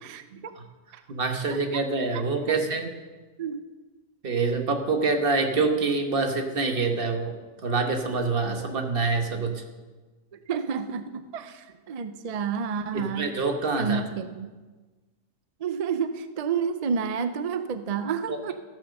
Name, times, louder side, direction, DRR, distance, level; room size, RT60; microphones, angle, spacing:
voice 1, 0.0-0.5 0.9-1.0 1.7-1.8 2.5-2.6 3.4-3.6 8.6-8.7 10.3-13.4 13.8-14.5 15.6-18.5, right 6 dB, 65° right, 10 dB, 0.3 m, -30 dB
voice 2, 1.1-2.9 4.2-7.3 7.6-9.6 12.9-14.0 18.3-18.5, right 4 dB, 45° right, 5 dB, 1.3 m, -26 dB
14.5 x 6.6 x 6.5 m, 1.3 s
omnidirectional pair, 1.4 m